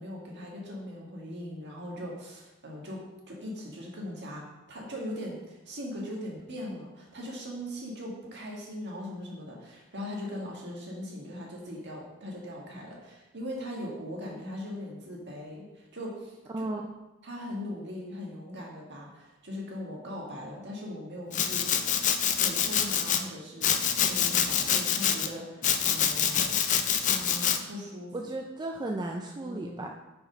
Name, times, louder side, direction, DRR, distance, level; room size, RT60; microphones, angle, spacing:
voice 1, 0.0-16.6 17.2-21.7 22.4-26.6 27.0-28.2 29.4-29.9, left 1 dB, 55° right, -2 dB, 1.8 m, -40 dB
voice 2, 16.5-16.9 28.1-29.9, right 2 dB, 20° right, 2 dB, 0.4 m, -34 dB
Domestic sounds home sounds, 21.3-23.2 23.6-25.3 25.6-27.6, left 8 dB, 35° left, 0.5 m, -26 dB
6.1 x 5.1 x 5.1 m, 1.0 s
head